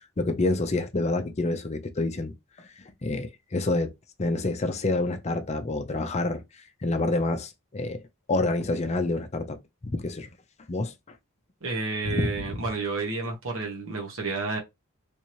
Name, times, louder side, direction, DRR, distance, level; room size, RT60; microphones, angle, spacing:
voice 1, 0.2-2.3 2.6-2.7 3.0-3.9 4.2-6.4 6.8-8.0 8.3-10.3 10.7-10.9 12.1-12.3, left 2 dB, 30° left, 0.5 m, -27 dB
voice 2, 11.6-14.6, right 3 dB, 65° right, 1.2 m, -30 dB
3.5 x 2.9 x 3.0 m
head